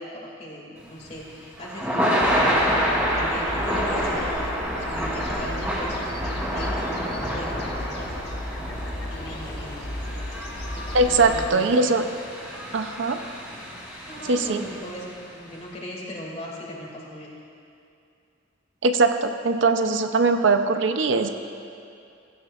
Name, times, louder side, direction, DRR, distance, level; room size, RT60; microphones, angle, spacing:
voice 1, 0.0-8.1 8.9-10.2 10.7-11.7 14.0-15.0 15.3-17.3, equal, 35° left, -3 dB, 2.3 m, -39 dB
Thunder / Rain, 0.9-15.1, equal, 10° right, 2.7 m, -28 dB
sound 1, 2.2-11.5, left 1 dB, 60° left, 1.1 m, -34 dB
voice 2, 10.9-12.1 12.7-13.2 14.3-14.6 18.8-21.3, right 3 dB, 70° right, 7 dB, 0.6 m, -21 dB
16.0 x 15.5 x 2.4 m, 2.5 s
head